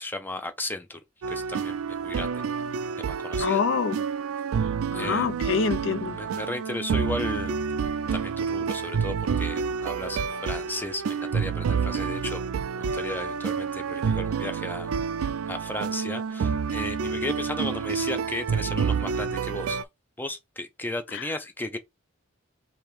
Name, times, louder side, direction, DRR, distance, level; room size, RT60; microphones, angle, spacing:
voice 1, 0.0-2.4 3.1-3.6 4.9-5.3 6.1-12.4 12.8-14.9 15.5-19.8 20.2-21.8, left 1 dB, 10° left, 0.5 m, -35 dB
sound 1, 1.2-19.8, right 6 dB, 85° right, 0.4 m, -29 dB
voice 2, 3.4-4.0 4.9-6.2 21.1-21.3, left 6 dB, 60° left, 0.4 m, -26 dB
3.5 x 2.8 x 4.6 m
head